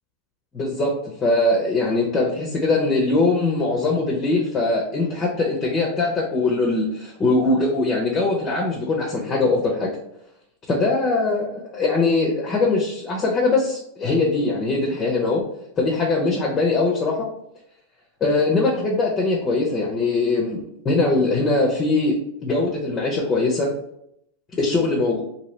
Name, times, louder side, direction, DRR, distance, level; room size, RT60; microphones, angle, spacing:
voice 1, 0.5-0.9 1.2-9.9 10.7-15.4 15.8-17.2 18.2-23.7 24.6-25.2, left 3 dB, 25° left, -2 dB, 0.6 m, -21 dB
2.8 x 2.7 x 3.1 m, 0.76 s
supercardioid pair, 130°, 0 cm